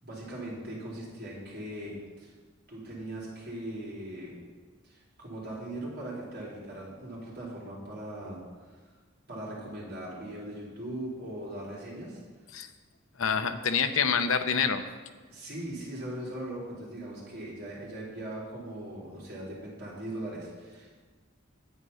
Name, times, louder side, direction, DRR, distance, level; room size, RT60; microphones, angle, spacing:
voice 1, 0.0-2.3 2.7-4.4 4.8-8.4 8.6-8.7 9.3-12.2 15.3-21.0, right 1 dB, 50° right, -5 dB, 4.1 m, -40 dB
voice 2, 13.2-14.8, left 6 dB, 80° left, 8 dB, 0.8 m, -26 dB
9.7 x 9.2 x 5.6 m, 1.4 s
head